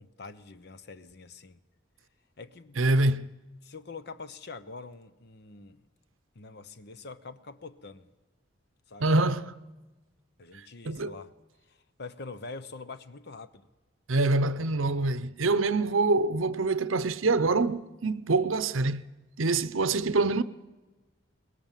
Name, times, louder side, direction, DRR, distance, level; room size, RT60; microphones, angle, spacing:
voice 1, 0.0-1.6 2.4-2.8 3.6-5.8 6.3-8.1 8.9-9.1 10.4-11.3 11.7-13.7, left 4 dB, 55° left, 1.0 m, -45 dB
voice 2, 2.8-3.3 9.0-9.5 10.8-11.2 14.1-19.0 19.4-20.4, right 3 dB, 90° right, 0.8 m, -25 dB
23.0 x 20.5 x 7.5 m
head